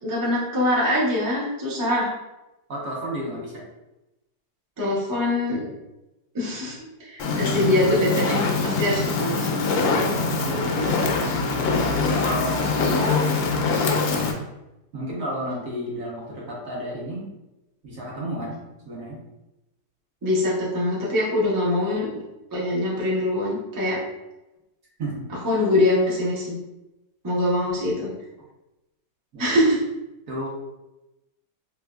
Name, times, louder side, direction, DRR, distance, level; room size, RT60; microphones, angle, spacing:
voice 1, 0.0-2.1 4.8-5.7 6.3-9.6 20.2-22.2 22.5-24.0 25.4-26.6 27.2-28.1 29.4-29.8, left 1 dB, 25° right, -6 dB, 0.4 m, -23 dB
voice 2, 2.7-3.6 10.4-11.0 12.2-14.0 14.9-17.3 17.8-18.6 18.8-19.2 25.0-25.2 29.3-29.6 30.3-30.5, right 1 dB, 55° right, -4 dB, 1.2 m, -32 dB
Fire, 7.2-14.3, left 4 dB, 70° left, 0.9 m, -23 dB
3.4 x 2.9 x 2.3 m, 0.97 s
omnidirectional pair, 1.8 m